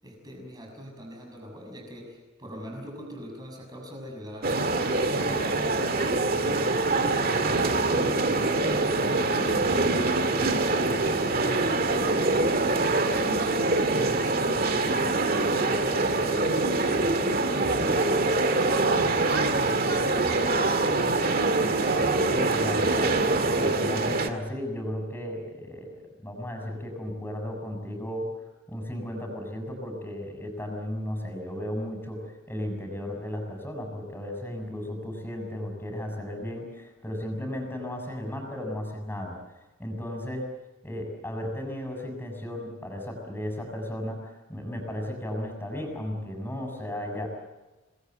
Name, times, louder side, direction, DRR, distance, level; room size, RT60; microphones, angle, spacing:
voice 1, 0.0-8.3 8.6-15.4 15.7-20.7, equal, 20° right, 1 dB, 6.4 m, -41 dB
sound 1, 4.4-24.3, right 2 dB, 50° right, 2.0 m, -24 dB
voice 2, 22.3-28.3 28.7-32.2 32.5-39.4 39.8-40.5 40.8-47.3, left 1 dB, 10° left, 3 dB, 6.6 m, -35 dB
27.0 x 20.0 x 8.0 m, 1.1 s
head